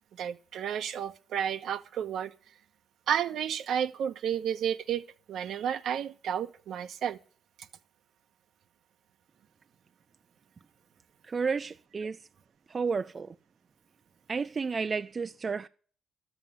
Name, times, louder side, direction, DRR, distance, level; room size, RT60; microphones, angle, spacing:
voice 1, 0.1-2.3 3.1-7.2, right 9 dB, 75° right, 1.2 m, -32 dB
voice 2, 11.3-12.2 12.7-13.3 14.3-15.7, right 5 dB, 35° right, 0.6 m, -31 dB
13.0 x 7.6 x 7.5 m
cardioid pair, 90°, 0 cm